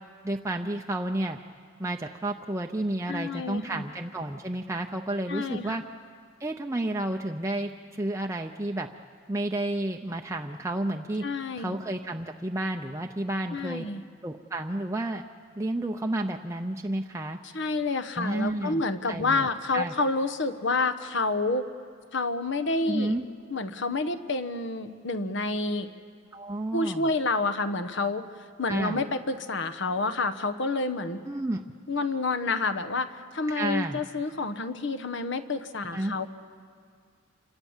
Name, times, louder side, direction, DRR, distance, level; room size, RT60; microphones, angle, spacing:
voice 1, 0.2-1.4 1.8-5.8 6.4-8.9 9.3-11.3 11.6-13.9 14.2-15.2 15.6-17.4 18.2-18.8 19.1-19.5 19.7-19.9 22.9-23.3 26.3-27.1 28.7-29.0 31.3-31.6 33.5-34.0 35.9-36.1, right 1 dB, 15° right, 2 dB, 0.6 m, -31 dB
voice 2, 3.1-3.8 5.3-5.8 11.2-11.7 13.5-14.0 17.5-21.7 22.1-23.1 23.5-25.9 26.7-28.2 28.6-31.2 31.9-36.3, left 3 dB, 60° left, 11 dB, 1.2 m, -29 dB
27.5 x 26.0 x 7.3 m, 2.1 s
head